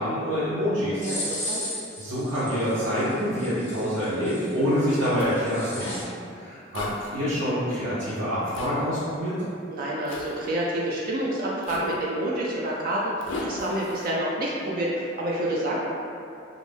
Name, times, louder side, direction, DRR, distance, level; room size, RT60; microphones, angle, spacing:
voice 1, 0.0-1.1 2.0-9.4, equal, 80° right, -13 dB, 0.7 m, -26 dB
sound 1, 1.0-6.0, left 1 dB, 10° left, 0.7 m, -36 dB
voice 2, 1.0-1.7 9.7-15.8, right 1 dB, 50° right, -4 dB, 0.3 m, -28 dB
Zipper (clothing), 5.2-5.3 6.7-7.2 8.5-8.7 10.1-10.3 11.6-12.0 13.2-14.1, left 2 dB, 75° left, 0.4 m, -35 dB
2.5 x 2.1 x 3.3 m, 2.5 s
head